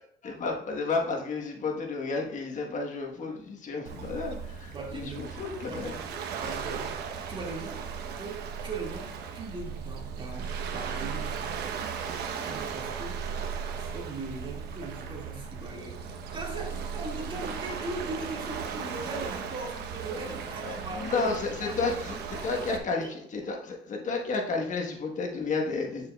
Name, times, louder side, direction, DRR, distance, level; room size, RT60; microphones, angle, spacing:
voice 1, 0.2-6.0 20.1-20.4 20.6-22.2 22.4-26.1, left 4 dB, 50° left, 2 dB, 1.3 m, -32 dB
Waves surf, 3.9-22.8, right 6 dB, 75° right, 1.0 m, -37 dB
voice 2, 4.7-5.3 5.7-7.0 7.3-11.7 12.1-13.2 13.7-21.1 21.6-22.6 23.0-23.1, right 3 dB, 30° right, 0 dB, 2.2 m, -40 dB
9.2 x 6.5 x 2.4 m, 0.70 s
cardioid pair, 110°, 17 cm